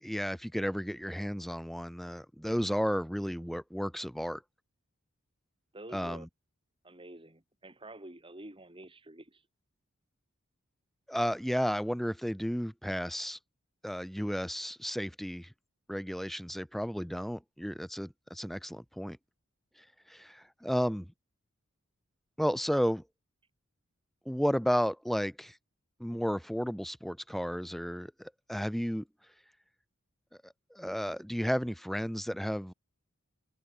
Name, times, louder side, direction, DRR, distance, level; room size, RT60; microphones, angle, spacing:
voice 1, 0.0-4.4 5.9-6.3 11.1-13.4 13.8-15.5 15.9-19.2 20.1-21.1 22.4-23.0 24.3-25.6 26.0-29.0 30.4-32.7, equal, ahead, 4.3 m, -33 dB
voice 2, 5.7-6.3 6.8-9.4, right 1 dB, 25° right, 3.1 m, -48 dB
open air
head